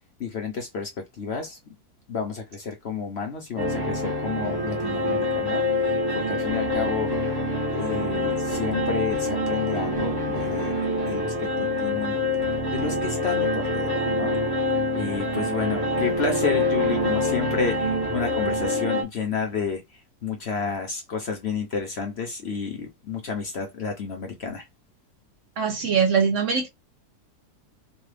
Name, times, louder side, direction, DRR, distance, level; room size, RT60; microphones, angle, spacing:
voice 1, 0.2-1.6 2.1-7.1 7.7-10.7 11.1-12.2 12.7-14.3 14.9-24.6, left 5 dB, 55° left, 0.8 m, -31 dB
sound 1, 3.6-19.0, left 1 dB, 20° right, 0.7 m, -26 dB
voice 2, 25.6-26.7, right 6 dB, 65° right, 0.8 m, -22 dB
3.0 x 2.3 x 3.2 m
omnidirectional pair, 1.7 m